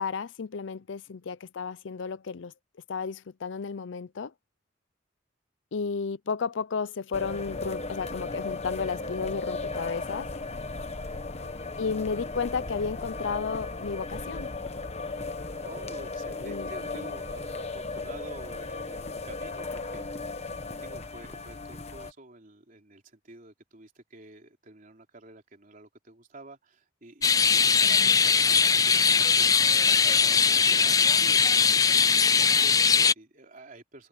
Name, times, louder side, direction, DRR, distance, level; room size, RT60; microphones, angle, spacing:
voice 1, 0.0-2.5 2.9-4.3 5.7-10.3 11.8-14.5 16.4-16.7 27.5-28.2, left 5 dB, 75° left, 0.5 m, -33 dB
sound 1, 7.1-22.1, left 3 dB, 35° left, 1.4 m, -36 dB
voice 2, 11.0-11.4 15.5-20.1 20.8-31.4 31.9-34.1, right 2 dB, 45° right, 3.7 m, -49 dB
sound 2, 27.2-33.1, left 6 dB, 20° left, 0.4 m, -21 dB
head